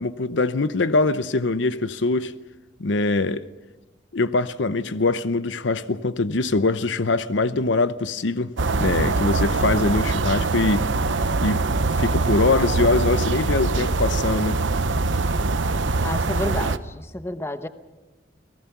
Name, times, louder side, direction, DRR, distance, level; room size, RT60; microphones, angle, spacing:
voice 1, 0.0-2.3 2.8-3.4 4.1-10.9 11.4-11.6 12.0-14.6, left 3 dB, 70° left, 0.8 m, -23 dB
sound 1, 8.6-16.8, right 3 dB, 80° right, 0.9 m, -23 dB
voice 2, 16.0-17.7, left 1 dB, 15° left, 1.0 m, -31 dB
29.5 x 18.0 x 6.0 m
head